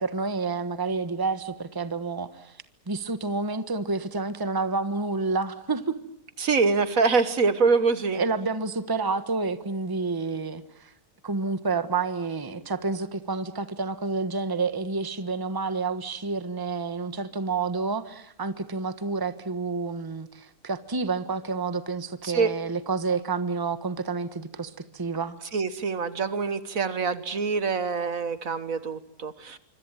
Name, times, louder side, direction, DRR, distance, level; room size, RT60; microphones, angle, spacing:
voice 1, 0.0-2.5 2.9-6.0 8.1-10.9 11.2-25.4, right 4 dB, 15° right, 12 dB, 1.2 m, -29 dB
voice 2, 6.4-8.2 22.2-22.5 25.5-29.6, right 4 dB, 65° right, 13 dB, 1.7 m, -25 dB
26.0 x 25.5 x 9.0 m, 0.72 s
omnidirectional pair, 1.6 m